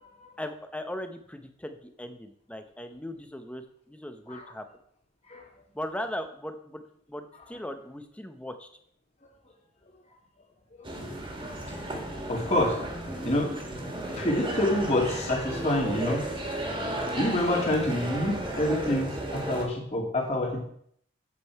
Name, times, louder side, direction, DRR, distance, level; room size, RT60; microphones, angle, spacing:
voice 1, 0.4-3.6 3.9-4.6 5.7-6.8 7.1-8.7, left 1 dB, 5° left, 8 dB, 0.7 m, -38 dB
sound 1, 10.8-19.6, right 1 dB, 25° right, 1.9 m, -34 dB
voice 2, 11.4-12.7 13.2-13.5 14.2-16.2 17.2-20.6, left 1 dB, 35° left, -1 dB, 2.3 m, -27 dB
8.5 x 7.6 x 4.6 m, 0.65 s
head